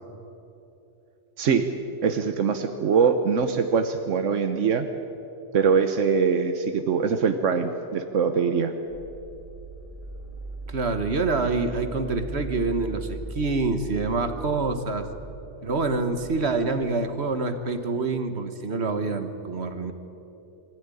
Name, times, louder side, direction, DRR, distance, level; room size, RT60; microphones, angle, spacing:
voice 1, 2.0-4.9 5.5-8.7, right 6 dB, 85° right, 8 dB, 1.3 m, -23 dB
sound 1, 8.9-17.6, right 1 dB, 30° right, 2.1 m, -39 dB
voice 2, 10.7-15.1 15.6-19.9, right 3 dB, 60° right, 8 dB, 1.7 m, -26 dB
24.0 x 15.0 x 9.8 m, 2.9 s
omnidirectional pair, 1.2 m